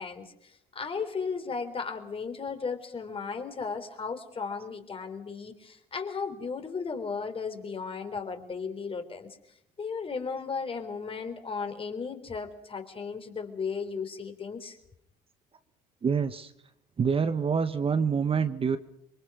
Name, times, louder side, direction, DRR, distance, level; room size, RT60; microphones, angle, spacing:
voice 1, 0.0-14.8, left 5 dB, 35° left, 7 dB, 3.7 m, -35 dB
voice 2, 16.0-16.5 17.0-18.8, right 6 dB, 35° right, 10 dB, 1.2 m, -26 dB
27.0 x 23.0 x 6.1 m, 0.76 s
cardioid pair, 110°, 17 cm